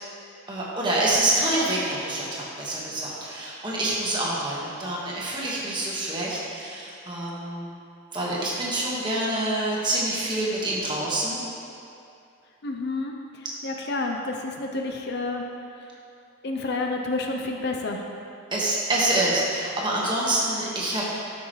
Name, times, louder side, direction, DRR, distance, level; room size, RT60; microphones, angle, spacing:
voice 1, 0.5-7.7 8.1-11.4 18.5-21.0, right 1 dB, 20° right, -6 dB, 1.5 m, -26 dB
voice 2, 12.6-15.4 16.4-18.0, left 2 dB, 50° left, 2 dB, 0.6 m, -30 dB
13.0 x 6.1 x 3.2 m, 2.6 s
head